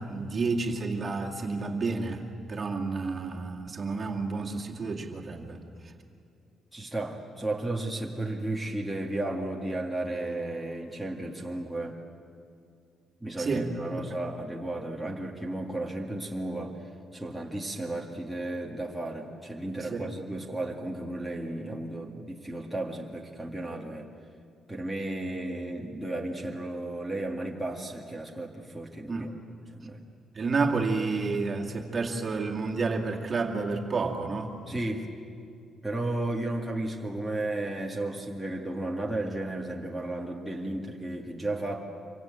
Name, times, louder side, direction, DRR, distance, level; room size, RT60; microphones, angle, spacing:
voice 1, 0.0-2.2 2.5-5.6 13.4-13.8 19.8-20.1 29.1-29.4 30.3-34.8, right 4 dB, 30° right, 0 dB, 2.3 m, -30 dB
voice 2, 6.7-12.0 13.2-16.8 17.1-24.1 24.7-29.4 29.7-30.0 34.7-35.1 35.8-41.9, right 2 dB, ahead, -2 dB, 1.9 m, -34 dB
26.0 x 24.0 x 9.1 m, 2.4 s
cardioid pair, 150°, 0 cm